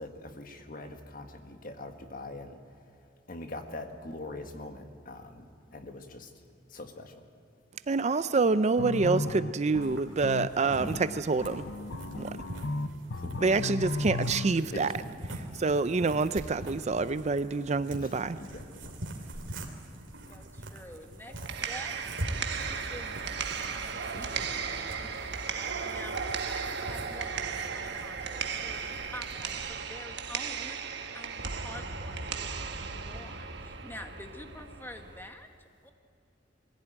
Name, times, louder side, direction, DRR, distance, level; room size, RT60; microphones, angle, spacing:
voice 1, 0.0-2.6 3.3-6.3 6.7-7.2 10.8-11.0 13.2-13.5 14.7-14.8 18.0-18.1 18.4-19.2 23.9-24.3, left 2 dB, 50° left, 6 dB, 1.7 m, -43 dB
voice 2, 7.9-11.6 12.2-12.3 13.4-13.8 14.0-14.9 15.6-18.4, right 4 dB, 35° right, 13 dB, 0.5 m, -27 dB
sound 1, 8.8-14.5, left 2 dB, 75° left, 0.8 m, -35 dB
sound 2, 9.8-29.7, right 1 dB, 85° right, 2.9 m, -44 dB
voice 3, 20.3-21.4 21.6-21.9 22.7-23.3 23.6-26.2 26.5-35.9, left 1 dB, 10° left, 5 dB, 1.6 m, -48 dB
sound 3, 21.3-35.3, right 6 dB, 65° right, 1.3 m, -36 dB
22.0 x 16.0 x 9.0 m, 2.6 s
head